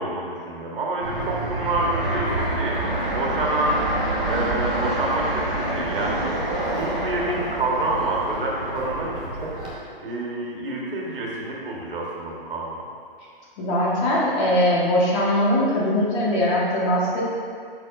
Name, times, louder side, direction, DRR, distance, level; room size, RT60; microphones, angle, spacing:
voice 1, 0.0-2.8 3.1-9.7 10.0-12.8, right 2 dB, 65° right, -2 dB, 1.7 m, -28 dB
Fixed-wing aircraft airplane, 1.0-9.7, right 1 dB, 10° right, 0.3 m, -27 dB
voice 2, 13.6-17.2, left 1 dB, 30° left, -5 dB, 1.6 m, -21 dB
8.7 x 6.1 x 2.7 m, 2.2 s
hypercardioid pair, 140°, 30 cm